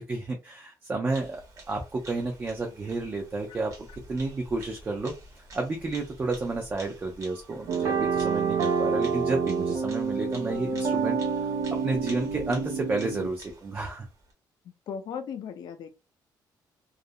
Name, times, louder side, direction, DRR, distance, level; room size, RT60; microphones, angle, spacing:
voice 1, 0.0-1.4 1.7-3.7 4.1-5.1 5.5-11.5 11.8-14.1, right 3 dB, 25° right, 0.5 m, -31 dB
Bird vocalization bird call bird song, 1.1-14.3, right 2 dB, 40° right, 0.9 m, -49 dB
sound 1, 7.7-13.3, right 5 dB, 80° right, 0.5 m, -28 dB
voice 2, 14.9-15.9, left 7 dB, 60° left, 0.5 m, -36 dB
2.4 x 2.0 x 2.6 m
cardioid pair, 145°, 8 cm